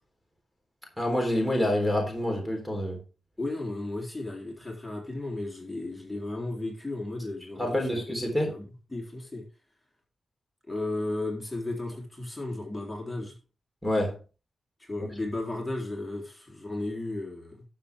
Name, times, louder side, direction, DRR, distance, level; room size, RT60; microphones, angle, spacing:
voice 1, 1.0-3.0 7.6-8.5 13.8-14.2, left 1 dB, 5° right, 3.7 m, -27 dB
voice 2, 3.4-8.2 8.4-9.4 10.7-13.4 14.8-17.6, left 2 dB, 15° left, 3.7 m, -34 dB
12.0 x 7.2 x 3.6 m
cardioid pair, 85°, 0 cm